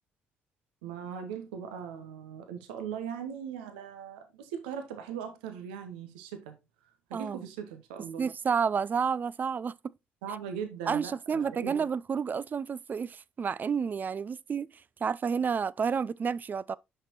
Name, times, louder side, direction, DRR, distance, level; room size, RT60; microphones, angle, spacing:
voice 1, 0.8-6.6 7.1-8.3 10.2-11.8, right 7 dB, 80° right, 0.8 m, -39 dB
voice 2, 7.1-7.5 8.2-9.7 10.9-16.8, right 6 dB, 35° right, 0.3 m, -30 dB
6.7 x 5.8 x 2.9 m
hypercardioid pair, 50°, 5 cm